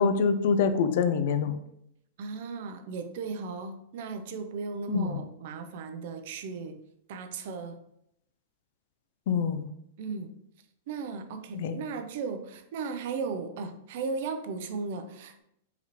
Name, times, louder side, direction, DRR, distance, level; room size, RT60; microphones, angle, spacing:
voice 1, 0.0-1.6 4.9-5.2 9.3-9.7 11.5-11.8, left 5 dB, 65° left, 10 dB, 0.4 m, -25 dB
voice 2, 2.2-6.8 7.1-7.8 10.0-10.4 10.9-15.4, right 4 dB, 60° right, 8 dB, 0.4 m, -36 dB
3.9 x 2.8 x 2.9 m, 0.76 s
hypercardioid pair, 140°, 0 cm